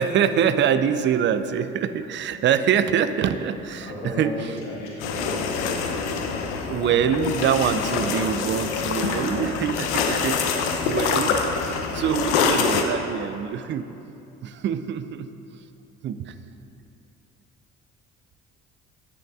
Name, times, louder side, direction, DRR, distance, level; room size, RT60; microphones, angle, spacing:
voice 1, 0.0-3.9 4.2-4.3 6.7-11.4 11.9-13.9 14.4-15.3 16.0-16.3, right 8 dB, 35° right, 11 dB, 0.4 m, -24 dB
voice 2, 3.8-5.9, left 1 dB, 85° left, -4 dB, 1.3 m, -34 dB
sound 1, 5.0-12.8, left 5 dB, 70° left, 0.7 m, -25 dB
8.7 x 5.7 x 3.6 m, 2.8 s
figure-of-eight pair, 50°, 36 cm